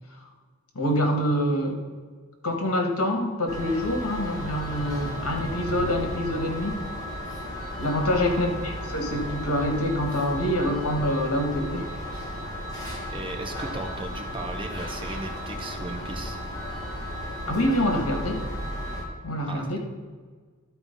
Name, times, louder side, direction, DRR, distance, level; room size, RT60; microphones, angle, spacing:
voice 1, 0.8-1.8 2.4-6.8 7.8-11.9 17.5-18.4 19.2-19.8, equal, 80° left, 3 dB, 1.8 m, -26 dB
sound 1, 3.5-19.0, equal, 15° left, 2.1 m, -34 dB
sound 2, 4.8-7.3, right 1 dB, 80° right, 1.0 m, -40 dB
voice 2, 13.1-16.4 19.5-19.8, right 2 dB, 20° right, 3 dB, 1.0 m, -36 dB
12.5 x 4.5 x 5.5 m, 1.5 s
head